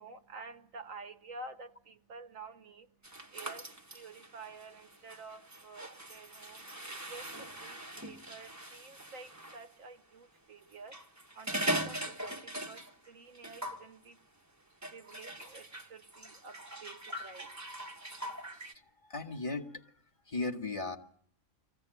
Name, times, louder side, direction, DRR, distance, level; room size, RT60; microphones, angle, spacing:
voice 1, 0.0-6.7 7.1-14.2 14.9-17.5, right 3 dB, 80° right, 1.6 m, -50 dB
sound 1, 3.0-9.6 10.7-13.1 13.3-13.9 14.8-18.7, right 1 dB, 15° right, 1.2 m, -41 dB
voice 2, 19.0-19.9 20.3-21.0, left 3 dB, 25° left, 1.7 m, -37 dB
23.5 x 15.5 x 9.0 m
omnidirectional pair, 1.4 m